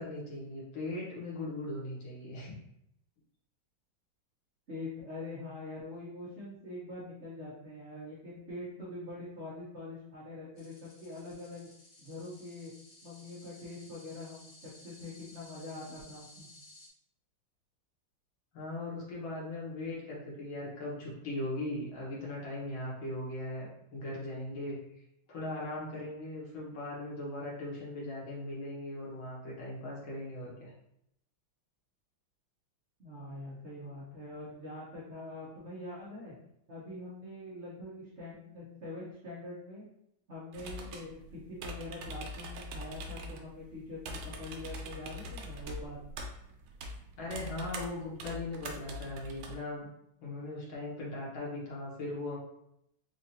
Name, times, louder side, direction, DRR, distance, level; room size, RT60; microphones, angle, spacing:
voice 1, 0.0-2.5 18.5-24.8 25.3-30.7 47.2-49.9 50.2-52.4, left 2 dB, 75° left, -6 dB, 2.0 m, -39 dB
voice 2, 4.7-11.7 12.0-12.7 13.0-14.5 14.8-16.5 33.0-36.3 36.7-39.9 40.3-46.0, left 2 dB, 50° right, -8 dB, 0.9 m, -44 dB
sound 1, 10.6-16.9, left 2 dB, 55° left, 1.1 m, -56 dB
sound 2, 40.5-49.6, equal, 85° right, 1.4 m, -43 dB
4.8 x 2.5 x 2.7 m, 0.78 s
omnidirectional pair, 2.2 m